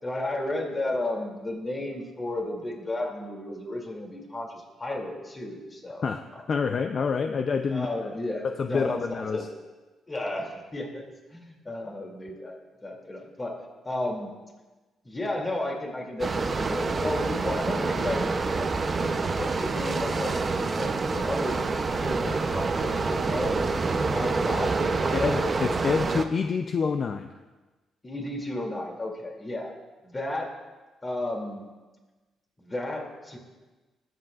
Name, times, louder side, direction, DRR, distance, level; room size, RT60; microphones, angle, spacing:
voice 1, 0.0-6.1 6.3-6.4 7.0-7.1 7.7-9.5 10.1-11.0 11.3-12.6 12.8-13.6 13.8-14.3 15.0-21.6 22.0-23.7 24.0-25.5 28.0-29.7 30.0-30.5 31.0-31.7 32.6-33.4, left 1 dB, 25° left, 0 dB, 2.6 m, -33 dB
voice 2, 6.5-8.1 8.6-9.5 25.1-27.3, left 5 dB, 50° left, 7 dB, 0.4 m, -27 dB
sound 1, 16.2-26.3, right 4 dB, 35° right, 0.6 m, -27 dB
17.5 x 7.9 x 2.4 m, 1.2 s
cardioid pair, 90°, 0 cm